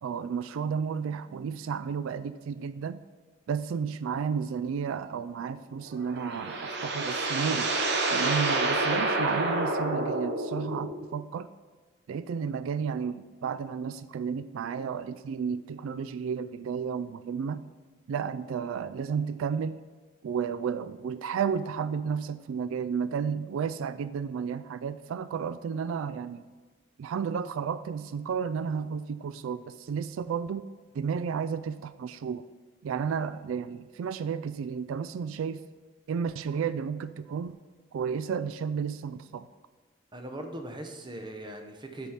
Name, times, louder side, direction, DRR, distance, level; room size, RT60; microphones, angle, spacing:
voice 1, 0.0-3.0 3.5-7.7 8.1-11.5 12.1-17.6 18.1-19.8 20.2-26.4 27.0-30.7 30.9-32.4 32.8-35.6 36.1-37.6 37.9-39.5, right 6 dB, 80° right, 14 dB, 0.3 m, -32 dB
sound 1, 5.9-11.1, right 2 dB, 55° right, 0.9 m, -28 dB
voice 2, 40.1-42.1, right 1 dB, 20° right, 4 dB, 0.7 m, -40 dB
8.3 x 4.6 x 5.6 m, 1.4 s
head